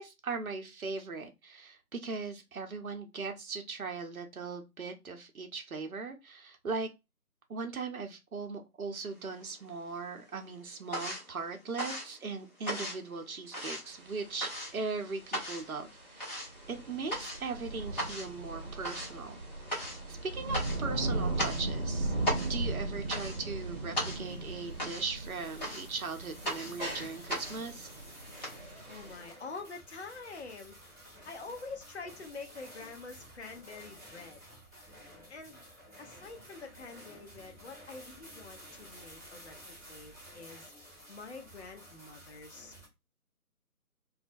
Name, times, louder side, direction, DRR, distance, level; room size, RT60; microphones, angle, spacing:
voice 1, 0.0-6.9 7.5-19.4 20.1-22.1 22.5-27.9, right 4 dB, 65° right, 0.7 m, -39 dB
sound 1, 9.1-9.9 10.2-28.5, equal, 30° left, 1.0 m, -38 dB
sound 2, 13.9-29.2, right 2 dB, 40° right, 0.9 m, -38 dB
sound 3, 24.1-42.9, equal, 5° left, 1.0 m, -53 dB
voice 2, 28.9-31.0 31.2-34.4 35.3-35.6 36.0-40.7 41.1-42.7, left 4 dB, 50° left, 0.5 m, -46 dB
2.3 x 2.1 x 2.5 m
figure-of-eight pair, 155°, 45 cm